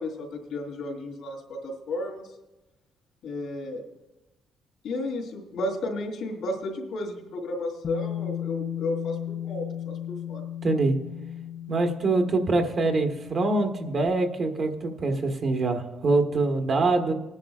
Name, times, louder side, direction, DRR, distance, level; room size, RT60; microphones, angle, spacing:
voice 1, 0.0-2.3 3.2-3.8 4.8-10.4, left 2 dB, 80° left, 0 dB, 3.3 m, -33 dB
Bass guitar, 7.8-14.1, left 11 dB, 55° left, 0.5 m, -35 dB
voice 2, 10.6-10.9 11.7-17.1, right 3 dB, 50° right, 4 dB, 1.4 m, -24 dB
20.0 x 10.5 x 2.5 m, 1.0 s
cardioid pair, 90°, 0 cm